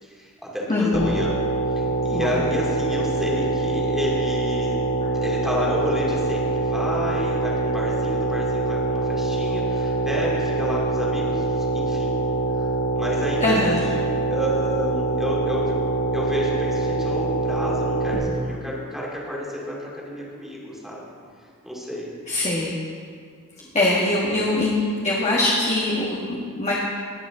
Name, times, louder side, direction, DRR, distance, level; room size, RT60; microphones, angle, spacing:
voice 1, 0.0-1.3 1.8-4.8 5.2-12.2 12.5-15.8 16.1-21.1 21.6-22.1 24.0-24.4, equal, ahead, -5 dB, 2.3 m, -30 dB
voice 2, 0.7-1.2 2.1-2.3 5.0-5.1 13.4-13.8 22.3-22.7 23.7-24.8 25.0-26.7, left 2 dB, 30° left, -5 dB, 1.4 m, -22 dB
sound 1, 0.9-18.2, right 2 dB, 85° left, 1.6 m, -24 dB
20.0 x 7.1 x 3.7 m, 2.2 s
head